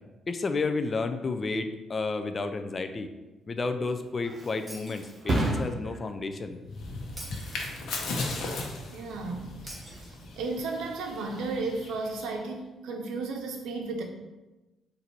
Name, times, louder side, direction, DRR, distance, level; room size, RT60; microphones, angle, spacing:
voice 1, 0.3-3.1 3.5-7.4, left 3 dB, 35° left, 7 dB, 0.4 m, -32 dB
Thump thud, 3.7-11.2 11.6-12.0, right 1 dB, 50° right, 1.0 m, -36 dB
Shatter, 4.7-5.6 7.2-8.2 9.7-10.7, right 1 dB, 15° right, 1.2 m, -46 dB
sound 1, 6.7-12.4, left 2 dB, 70° left, 0.9 m, -37 dB
voice 2, 8.9-14.0, right 3 dB, 85° right, 3 dB, 0.6 m, -34 dB
4.1 x 2.6 x 4.4 m, 1.1 s
cardioid pair, 90°, 0 cm